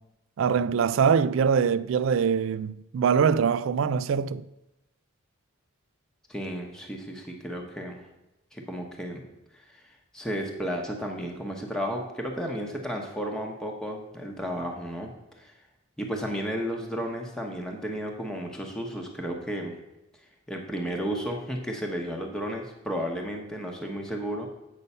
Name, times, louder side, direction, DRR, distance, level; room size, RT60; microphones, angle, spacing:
voice 1, 0.4-4.4, right 6 dB, 65° right, 0.3 m, -23 dB
voice 2, 6.3-8.1 8.5-9.3 9.5-15.5 16.0-19.8 20.5-24.5, equal, 5° left, 0.9 m, -33 dB
8.2 x 5.4 x 5.4 m
head